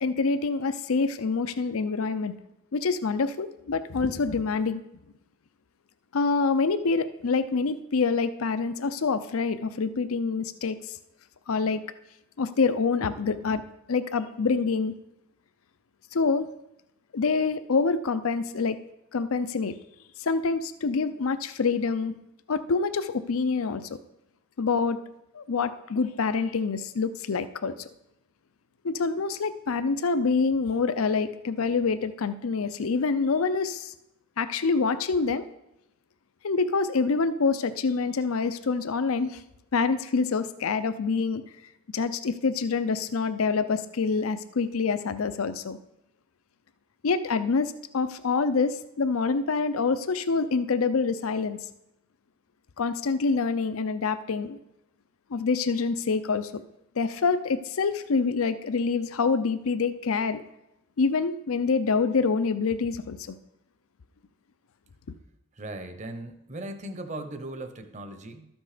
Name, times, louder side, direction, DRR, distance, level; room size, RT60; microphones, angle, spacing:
voice 1, 0.0-2.3 2.7-4.8 6.1-10.8 11.5-11.8 12.4-13.6 13.9-14.9 16.1-16.5 17.1-18.8 19.1-19.8 20.2-22.1 22.5-23.9 24.6-25.0 25.3-27.9 28.8-33.9 34.4-35.5 36.4-39.4 39.7-41.4 41.9-45.8 47.0-51.6 52.8-54.6 55.3-56.6 57.0-60.4 61.0-63.4, left 4 dB, 80° left, 12 dB, 0.5 m, -26 dB
voice 2, 65.6-68.5, right 1 dB, 35° right, 8 dB, 0.9 m, -38 dB
13.0 x 6.1 x 5.0 m, 0.85 s
head